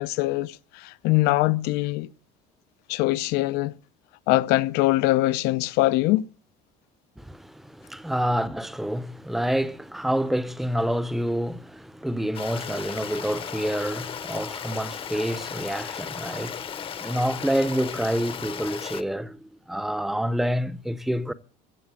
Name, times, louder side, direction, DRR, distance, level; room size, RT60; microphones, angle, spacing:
voice 1, 0.0-2.1 2.9-3.7 4.3-6.3, left 17 dB, 80° left, 0.6 m, -23 dB
voice 2, 7.2-21.3, equal, ahead, 0.6 m, -28 dB
Stream, 12.3-19.0, left 8 dB, 35° left, 0.8 m, -36 dB
15.5 x 7.6 x 7.5 m
cardioid pair, 140°, 17 cm